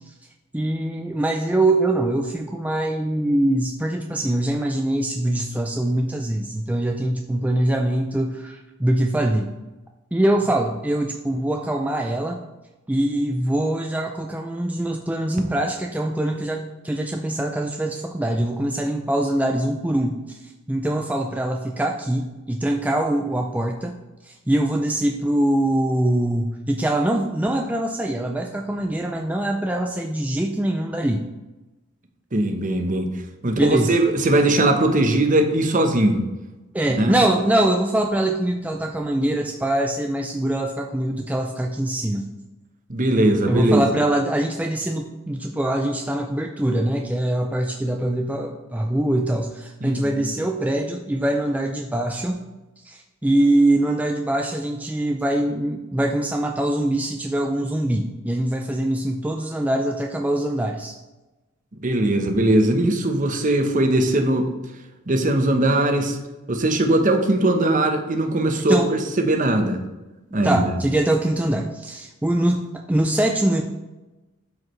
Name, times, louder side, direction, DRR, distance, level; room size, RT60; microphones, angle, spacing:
voice 1, 0.5-9.5 10.1-12.4 12.9-20.4 20.7-23.9 24.2-31.2 33.4-34.0 36.7-42.3 43.5-52.4 52.8-60.9 68.7-68.9 70.4-73.6, right 1 dB, 10° right, 2 dB, 0.4 m, -23 dB
voice 2, 32.3-33.1 33.4-36.2 37.0-37.1 42.9-43.9 49.8-50.3 61.8-64.5 65.1-66.2 66.5-69.8 70.3-70.6, right 1 dB, 40° right, 5 dB, 0.9 m, -20 dB
12.0 x 4.9 x 3.2 m, 1.1 s
head